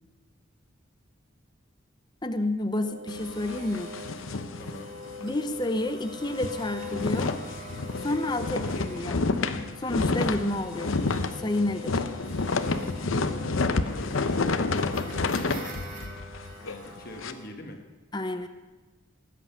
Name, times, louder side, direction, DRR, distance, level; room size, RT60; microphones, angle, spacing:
voice 1, 2.2-3.9 5.2-7.4 8.0-9.3 9.8-11.0 11.4-12.0 18.1-18.5, left 1 dB, 20° left, 8 dB, 0.6 m, -30 dB
sound 1, 2.8-17.5, left 2 dB, 40° right, 2.3 m, -43 dB
sound 2, 3.1-5.3 5.7-5.8 6.1-17.3, left 3 dB, 80° left, 0.8 m, -29 dB
voice 2, 4.3-4.9 8.4-8.8 12.6-15.8 16.6-17.9, left 1 dB, 50° left, 4 dB, 1.5 m, -45 dB
20.0 x 8.4 x 5.6 m, 1.2 s
head